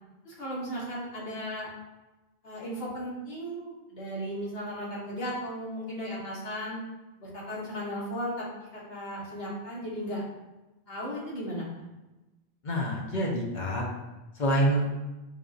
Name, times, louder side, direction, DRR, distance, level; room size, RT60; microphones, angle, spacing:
voice 1, 0.2-1.7 2.4-6.8 7.2-10.2 10.9-11.6, equal, 70° left, -5 dB, 1.2 m, -36 dB
voice 2, 12.6-13.8 14.4-14.8, right 1 dB, 55° left, -1 dB, 0.7 m, -26 dB
4.7 x 2.6 x 2.4 m, 1.1 s
omnidirectional pair, 1.1 m